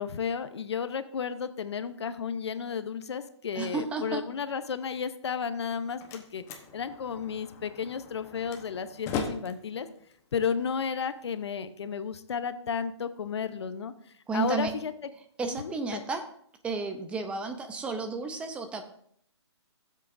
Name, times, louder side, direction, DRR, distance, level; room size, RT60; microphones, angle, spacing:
voice 1, 0.0-6.4 6.7-9.9 10.3-15.1 15.5-16.0, left 6 dB, 65° left, 12 dB, 0.8 m, -33 dB
voice 2, 3.6-4.2 14.3-14.7 15.4-16.2 16.6-18.8, right 4 dB, 10° right, 7 dB, 0.5 m, -32 dB
Slam, 5.5-11.5, left 5 dB, 20° left, 1.0 m, -40 dB
15.5 x 7.6 x 2.6 m, 0.68 s
hypercardioid pair, 150°, 15 cm